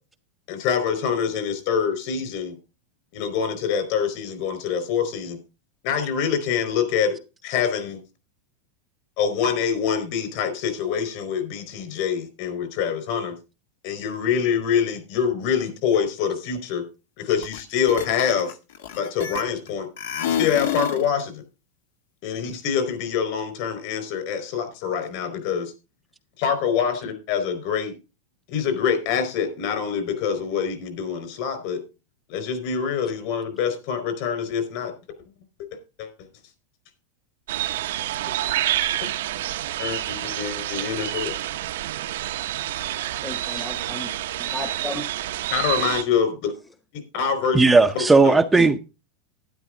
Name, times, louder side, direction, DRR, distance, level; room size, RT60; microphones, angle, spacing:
voice 1, 0.5-2.6 3.1-5.4 5.8-7.2 7.4-8.0 9.2-13.4 13.8-16.8 17.2-18.5 19.0-19.9 20.4-21.4 22.2-25.7 26.4-27.9 28.5-31.8 32.3-34.9 35.7-36.1 39.8-41.3 45.5-46.5 46.9-48.4, left 7 dB, 55° left, 4.6 m, -25 dB
sound 1, 17.4-17.6 17.9-19.7 20.0-21.1, left 9 dB, 85° left, 1.6 m, -27 dB
sound 2, 37.5-46.0, right 13 dB, 80° right, 0.8 m, -28 dB
voice 2, 43.2-45.1 48.5-48.7, left 1 dB, 10° left, 0.9 m, -34 dB
voice 3, 47.5-48.8, right 3 dB, 5° right, 0.6 m, -16 dB
12.0 x 10.5 x 3.8 m
supercardioid pair, 155°, 0 cm